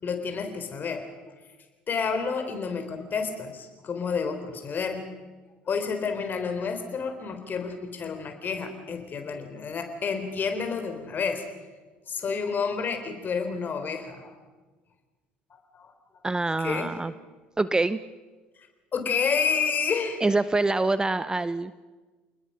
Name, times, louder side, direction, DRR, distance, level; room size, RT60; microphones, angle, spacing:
voice 1, 0.0-1.0 1.9-5.0 5.7-11.4 12.1-14.4 15.5-15.9 16.5-17.0 18.9-20.2, left 5 dB, 35° left, 7 dB, 3.9 m, -30 dB
voice 2, 16.2-17.1 17.6-18.0 20.2-21.8, right 2 dB, 15° right, 15 dB, 0.7 m, -25 dB
28.5 x 20.5 x 5.7 m, 1.3 s
figure-of-eight pair, 65°, 5 cm